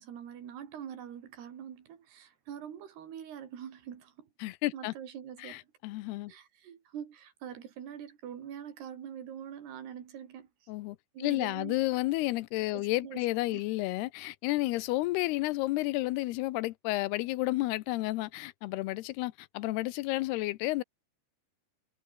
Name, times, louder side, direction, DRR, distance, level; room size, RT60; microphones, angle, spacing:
voice 1, 0.0-4.3 4.7-5.6 6.3-10.5 11.1-11.7 12.7-13.2 13.5-13.6, right 9 dB, 80° right, 4.8 m, -44 dB
voice 2, 4.4-4.9 5.4-6.3 10.7-20.8, left 19 dB, 85° left, 2.7 m, -31 dB
omnidirectional pair, 4.7 m